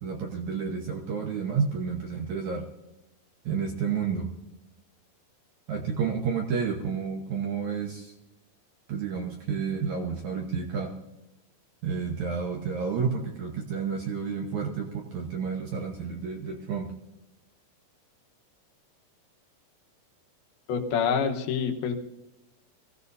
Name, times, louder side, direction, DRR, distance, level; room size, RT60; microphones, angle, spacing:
voice 1, 0.0-2.6 3.5-4.3 5.7-8.1 8.9-10.9 11.8-16.9, right 6 dB, 65° right, 1 dB, 1.9 m, -30 dB
voice 2, 20.7-21.9, left 6 dB, 70° left, 2 dB, 2.9 m, -26 dB
23.0 x 16.0 x 2.7 m, 0.94 s
omnidirectional pair, 4.9 m